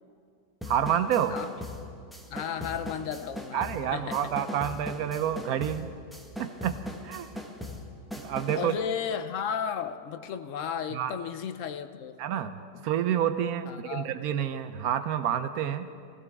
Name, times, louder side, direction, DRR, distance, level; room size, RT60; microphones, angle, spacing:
sound 1, 0.6-8.7, left 1 dB, ahead, 1.1 m, -40 dB
voice 1, 0.7-1.3 3.5-5.9 6.4-6.8 7.0-7.3 8.2-8.8 10.9-11.1 12.2-12.6 12.8-15.9, right 9 dB, 75° right, 10 dB, 1.0 m, -28 dB
voice 2, 2.3-3.6 3.9-4.2 8.5-12.2 12.7-12.8 13.7-14.1, left 7 dB, 65° left, 10 dB, 0.9 m, -34 dB
20.5 x 15.5 x 3.5 m, 2.3 s
omnidirectional pair, 1.6 m